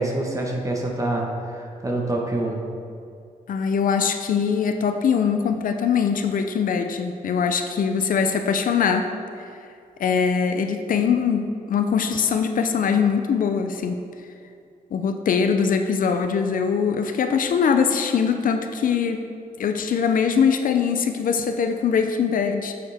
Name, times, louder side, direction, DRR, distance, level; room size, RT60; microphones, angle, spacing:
voice 1, 0.0-2.6, right 2 dB, 20° right, 0 dB, 1.2 m, -26 dB
voice 2, 3.5-9.1 10.0-14.0 14.9-19.2 19.6-22.7, left 6 dB, 65° left, 6 dB, 0.5 m, -22 dB
8.3 x 7.0 x 3.5 m, 2.4 s
cardioid pair, 105°, 15 cm